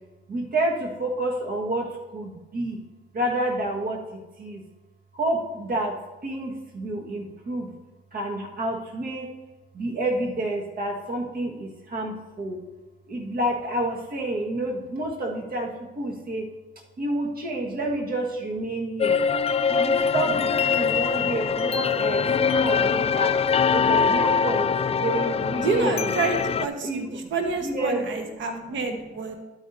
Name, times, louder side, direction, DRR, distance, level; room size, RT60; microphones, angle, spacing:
voice 1, 0.3-2.8 3.1-4.6 5.1-6.0 6.2-7.7 8.1-9.3 9.7-12.6 13.1-16.5 17.0-19.2 19.7-23.3 23.7-26.1 26.8-27.3 27.6-28.1, right 1 dB, 45° right, 0 dB, 1.7 m, -29 dB
sound 1, 19.0-26.7, left 6 dB, 30° left, 0.3 m, -23 dB
voice 2, 25.6-29.3, right 4 dB, 70° right, 5 dB, 1.4 m, -28 dB
11.5 x 9.0 x 2.7 m, 1.1 s
cardioid pair, 90°, 20 cm